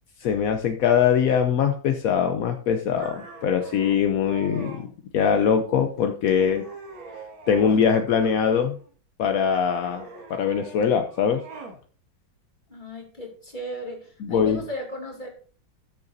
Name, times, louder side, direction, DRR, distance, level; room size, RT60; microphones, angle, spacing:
voice 1, 0.2-6.6 7.5-8.8 9.2-11.4 14.2-14.6, left 7 dB, 65° left, 6 dB, 0.9 m, -22 dB
sound 1, 2.9-4.8 5.4-5.9 6.3-7.9 8.2-8.9 9.5-11.8, right 3 dB, 80° right, 2.5 m, -43 dB
voice 2, 12.7-15.3, equal, 25° left, 1 dB, 2.5 m, -36 dB
17.5 x 6.8 x 2.6 m, 0.43 s
omnidirectional pair, 2.2 m